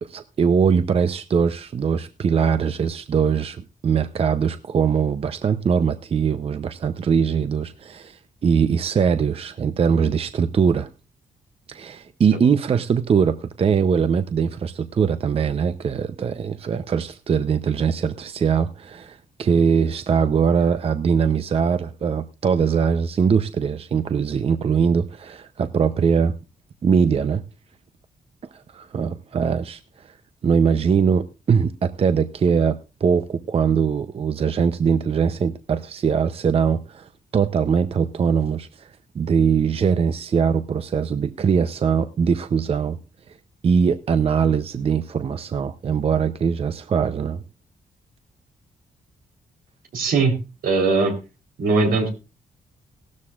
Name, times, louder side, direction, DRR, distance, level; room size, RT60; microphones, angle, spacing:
voice 1, 0.0-10.9 11.7-26.3 26.8-27.4 28.5-30.1 30.4-43.0 43.6-47.4, right 6 dB, 40° right, 0.6 m, -21 dB
voice 2, 49.9-50.3 50.6-51.1 51.6-52.1, right 3 dB, 85° right, 3.7 m, -19 dB
17.0 x 13.0 x 2.4 m
cardioid pair, 125°, 15 cm